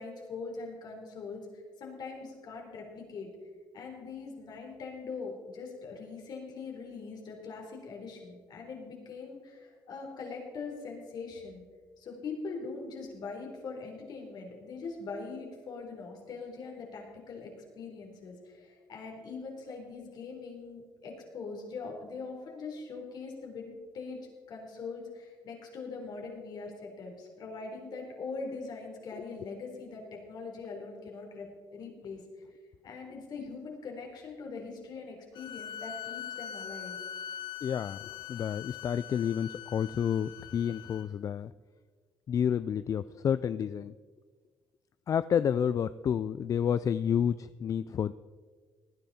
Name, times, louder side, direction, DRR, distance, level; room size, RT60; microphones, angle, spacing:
voice 1, 0.0-1.5 1.8-3.3 3.7-11.6 12.0-32.2 32.8-37.0, left 4 dB, 65° left, 0 dB, 3.7 m, -42 dB
sound 1, 35.3-41.0, left 9 dB, 80° left, 1.1 m, -42 dB
voice 2, 37.6-38.0 38.3-41.5 42.3-43.9 45.1-48.1, left 8 dB, 45° left, 15 dB, 0.3 m, -30 dB
19.0 x 10.0 x 4.3 m, 1.5 s
cardioid pair, 90°, 8 cm